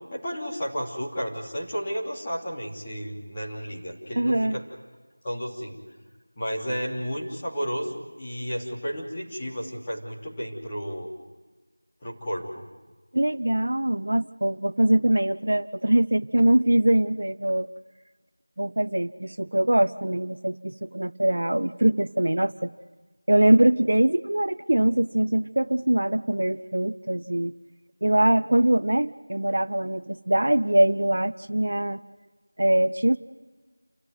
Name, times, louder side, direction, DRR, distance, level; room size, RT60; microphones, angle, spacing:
voice 1, 0.1-4.6 5.2-5.8 6.4-11.1 12.0-12.5, equal, 15° left, -6 dB, 3.1 m, -32 dB
voice 2, 4.2-4.6 13.1-17.7 18.6-22.7 23.3-27.5 28.0-32.0 32.6-33.2, right 1 dB, 60° right, 14 dB, 0.8 m, -22 dB
29.0 x 15.0 x 9.4 m, 1.4 s
figure-of-eight pair, 175°, 0 cm